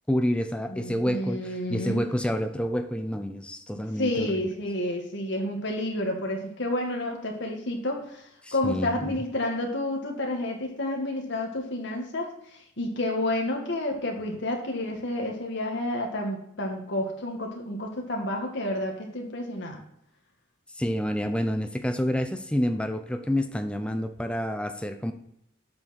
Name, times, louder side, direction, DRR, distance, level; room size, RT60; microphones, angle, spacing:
voice 1, 0.1-4.4 8.4-9.2 20.8-25.1, equal, 5° left, 7 dB, 0.6 m, -28 dB
voice 2, 0.7-2.0 4.0-8.0 8.5-12.3 12.8-19.8, left 1 dB, 60° left, 1 dB, 1.9 m, -30 dB
7.6 x 6.1 x 4.3 m, 0.76 s
head